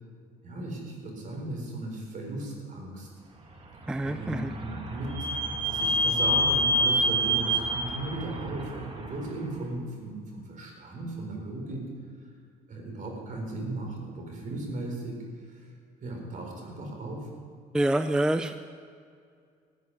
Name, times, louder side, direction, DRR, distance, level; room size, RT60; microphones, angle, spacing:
voice 1, 0.4-3.1 4.0-11.8 12.7-15.2 15.5-15.7 16.0-17.3, right 2 dB, 50° right, 1 dB, 4.0 m, -36 dB
Vehicle / Squeak, 3.8-9.4, equal, 30° right, 1.8 m, -28 dB
voice 2, 3.9-4.5 17.7-18.5, right 1 dB, 5° right, 10 dB, 0.4 m, -26 dB
14.0 x 6.4 x 9.9 m, 2.2 s
cardioid pair, 110°, 17 cm